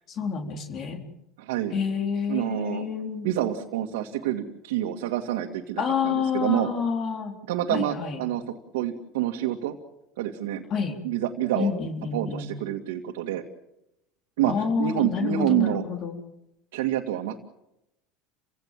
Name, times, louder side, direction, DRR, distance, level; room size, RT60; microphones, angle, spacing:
voice 1, 0.1-1.0 1.7-3.3 5.8-7.3 7.7-8.2 10.7-11.0 11.6-12.5 14.5-16.2, left 6 dB, 45° left, 4 dB, 4.0 m, -28 dB
voice 2, 1.4-1.7 2.3-2.9 3.2-6.7 7.5-8.4 8.7-9.8 10.2-10.6 11.0-11.7 12.1-13.4 14.4-15.8 16.7-17.4, right 12 dB, 90° right, 2 dB, 2.3 m, -27 dB
30.0 x 17.0 x 7.6 m, 0.86 s
supercardioid pair, 120°, 0 cm